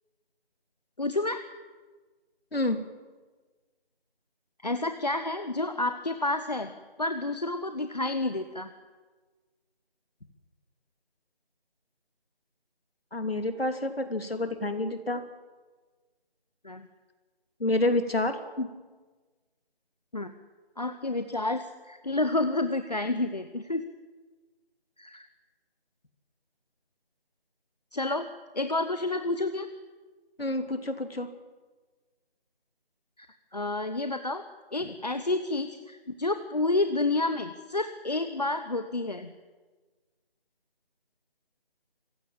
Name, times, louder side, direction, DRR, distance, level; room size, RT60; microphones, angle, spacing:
voice 1, 1.0-1.4 4.6-6.7 7.0-8.7 16.6-16.9 20.1-20.3 20.8-23.8 25.0-25.3 27.9-28.3 28.5-29.7 33.2-33.3 33.5-34.4 34.7-39.3, left 2 dB, 45° left, 9 dB, 1.1 m, -29 dB
voice 2, 13.1-15.2 17.6-18.7 30.4-31.3 34.8-35.0, left 2 dB, 75° left, 7 dB, 2.9 m, -28 dB
25.5 x 15.5 x 8.9 m, 1.3 s
figure-of-eight pair, 175°, 30 cm